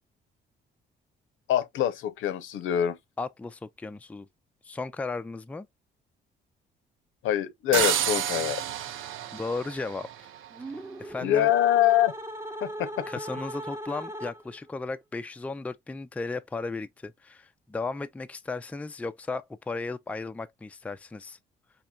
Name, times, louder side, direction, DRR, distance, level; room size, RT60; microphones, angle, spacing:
voice 1, 1.5-3.0 7.2-8.6 11.2-12.1 12.6-13.1, left 11 dB, 80° left, 0.7 m, -24 dB
voice 2, 3.2-4.3 4.6-5.7 9.3-10.1 11.0-11.5 13.1-21.4, left 3 dB, 5° left, 0.3 m, -35 dB
sound 1, 7.7-10.6, right 11 dB, 85° right, 0.6 m, -30 dB
sound 2, 10.5-14.7, right 1 dB, 15° right, 0.8 m, -38 dB
4.3 x 2.9 x 2.3 m
cardioid pair, 90°, 20 cm